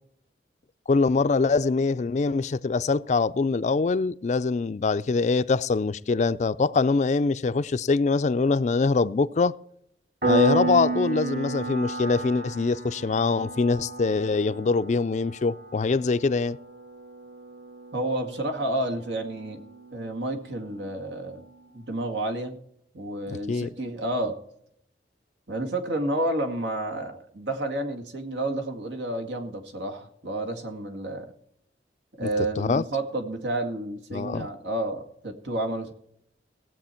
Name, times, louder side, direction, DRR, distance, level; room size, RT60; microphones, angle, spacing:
voice 1, 0.9-9.5 10.3-16.6 23.5-23.7 32.2-32.3 32.6-32.8 34.1-34.5, left 4 dB, 40° left, 0.4 m, -24 dB
Piano, 10.2-20.6, right 2 dB, 65° right, 4.8 m, -32 dB
voice 2, 17.9-19.6 19.9-21.4 21.7-22.6 22.9-24.4 25.5-31.3 32.2-35.9, right 1 dB, 90° right, 2.0 m, -30 dB
18.0 x 7.6 x 4.4 m
head